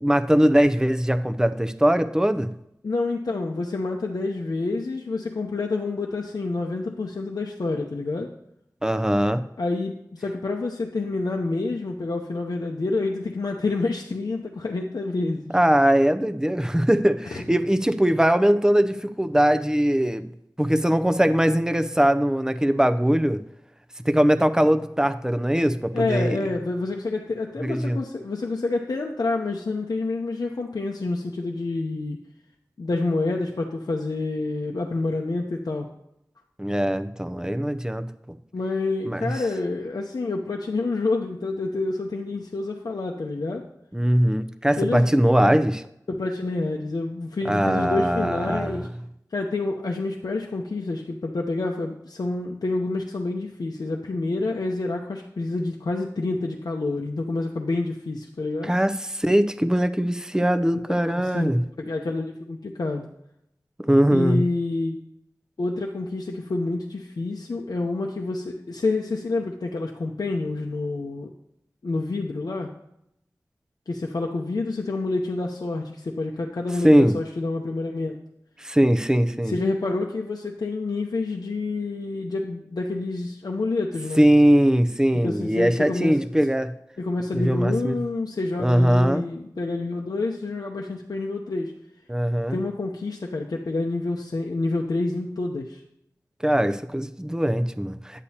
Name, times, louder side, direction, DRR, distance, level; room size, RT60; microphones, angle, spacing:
voice 1, 0.0-2.5 8.8-9.4 15.5-20.3 20.6-23.4 24.0-26.4 27.6-28.0 36.6-38.4 39.0-39.3 43.9-45.8 47.4-48.9 58.6-61.6 63.8-64.4 76.8-77.2 78.6-79.5 84.2-86.7 87.3-88.0 88.6-89.2 92.1-92.6 96.4-98.2, equal, 10° right, 10 dB, 0.5 m, -21 dB
voice 2, 2.8-8.3 9.6-15.5 17.3-17.4 25.9-32.2 32.8-35.9 38.5-43.7 44.8-45.2 46.1-48.9 49.3-58.7 60.9-61.5 61.8-63.1 64.1-65.0 65.6-71.3 71.8-72.7 73.9-78.2 79.5-84.2 85.1-86.3 87.0-91.7 92.5-95.8, left 3 dB, 80° left, 0 dB, 0.7 m, -28 dB
9.9 x 8.3 x 2.8 m, 0.78 s
wide cardioid pair, 50°, 7 cm